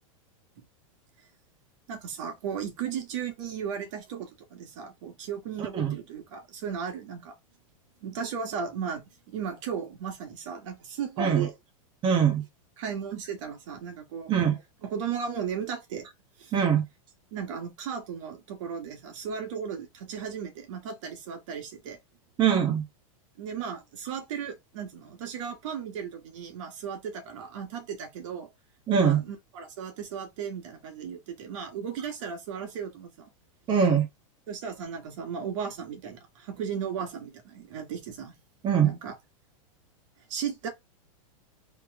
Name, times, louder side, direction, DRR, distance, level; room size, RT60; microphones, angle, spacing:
voice 1, 1.9-7.3 8.0-9.0 9.3-11.5 12.8-14.3 14.8-16.1 16.4-16.5 17.3-22.0 23.4-28.5 29.0-33.3 34.5-38.3 38.8-39.2 40.2-40.7, right 7 dB, 60° right, 1.6 m, -35 dB
voice 2, 5.6-5.9 11.2-11.5 12.0-12.4 14.3-14.6 16.5-16.8 22.4-22.8 28.9-29.2 33.7-34.1 38.6-38.9, right 7 dB, 25° right, 1.3 m, -22 dB
3.5 x 3.1 x 3.6 m
supercardioid pair, 140°, 18 cm